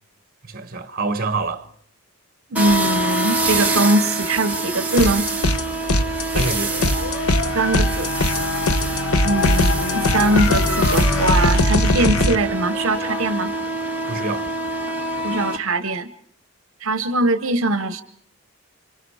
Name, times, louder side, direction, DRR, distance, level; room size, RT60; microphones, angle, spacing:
voice 1, 0.5-1.6 6.3-6.8 14.1-14.5, right 3 dB, 40° right, 1.4 m, -26 dB
sound 1, 2.5-15.6, right 2 dB, 5° right, 1.4 m, -26 dB
voice 2, 2.5-5.3 7.5-8.2 9.2-13.5 15.2-16.1 16.8-18.0, right 2 dB, 65° right, 0.9 m, -21 dB
sound 2, 5.0-5.6 5.9-12.4, left 1 dB, 80° left, 1.0 m, -20 dB
Dog, 6.5-11.6, left 5 dB, 55° left, 1.0 m, -29 dB
30.0 x 25.5 x 4.9 m
head